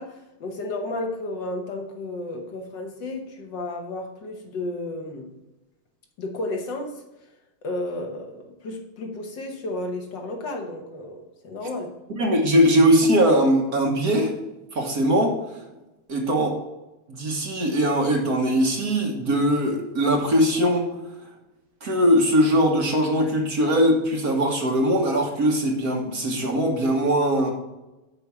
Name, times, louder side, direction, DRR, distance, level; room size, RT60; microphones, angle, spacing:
voice 1, 0.0-5.3 6.2-7.0 7.6-12.0, left 2 dB, 60° left, 3 dB, 1.7 m, -32 dB
voice 2, 12.1-14.3 14.7-15.4 16.1-16.6 17.1-20.9 21.8-27.5, equal, 50° right, 1 dB, 1.7 m, -21 dB
8.3 x 5.1 x 7.0 m, 1.0 s
omnidirectional pair, 2.3 m